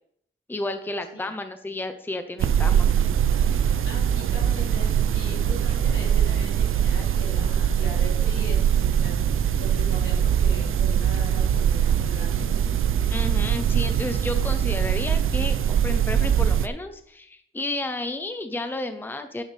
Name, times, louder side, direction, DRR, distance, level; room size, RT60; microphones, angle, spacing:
voice 1, 0.5-2.9 13.1-19.4, left 2 dB, 10° left, 8 dB, 0.7 m, -32 dB
sound 1, 2.4-16.7, right 9 dB, 85° right, 0.5 m, -22 dB
voice 2, 3.8-9.2 9.5-12.5, left 2 dB, 80° left, -3 dB, 4.6 m, -40 dB
11.0 x 11.0 x 3.4 m, 0.65 s
wide cardioid pair, 165°, 21 cm